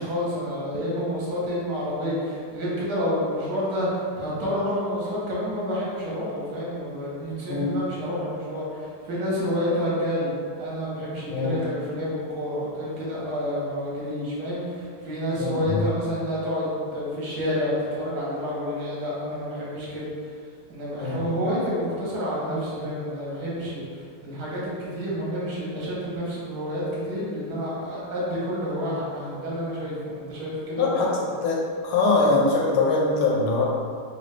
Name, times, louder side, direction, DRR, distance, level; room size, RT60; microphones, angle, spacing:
voice 1, 0.0-10.3 10.6-20.1 20.7-31.2, equal, 60° right, -7 dB, 1.3 m, -29 dB
voice 2, 15.4-15.9 21.0-21.2 30.8-31.1 31.4-31.6 31.8-33.7, left 3 dB, 85° left, -3 dB, 1.5 m, -22 dB
4.0 x 2.3 x 3.2 m, 2.1 s
omnidirectional pair, 2.3 m